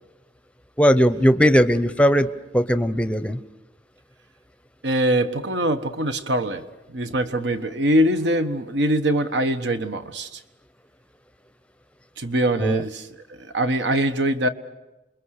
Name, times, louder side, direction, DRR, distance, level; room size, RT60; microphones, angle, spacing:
voice 1, 0.8-3.4 12.6-12.8, equal, 5° left, 12 dB, 0.7 m, -19 dB
voice 2, 4.8-10.4 12.2-14.5, right 1 dB, 70° right, 9 dB, 1.3 m, -23 dB
28.5 x 22.0 x 6.6 m, 1.0 s
head